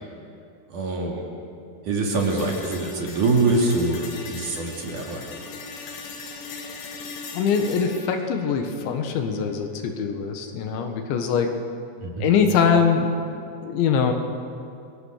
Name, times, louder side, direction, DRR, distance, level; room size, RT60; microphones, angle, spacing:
voice 1, 0.7-1.2 1.9-5.3 12.0-12.3, right 3 dB, 50° right, -1 dB, 3.6 m, -24 dB
sound 1, 2.1-10.1, left 4 dB, 55° left, 3.6 m, -39 dB
voice 2, 7.3-11.5 12.2-13.1 13.6-14.1, left 6 dB, 80° left, 5 dB, 3.8 m, -22 dB
29.0 x 22.0 x 6.6 m, 2.6 s
omnidirectional pair, 5.3 m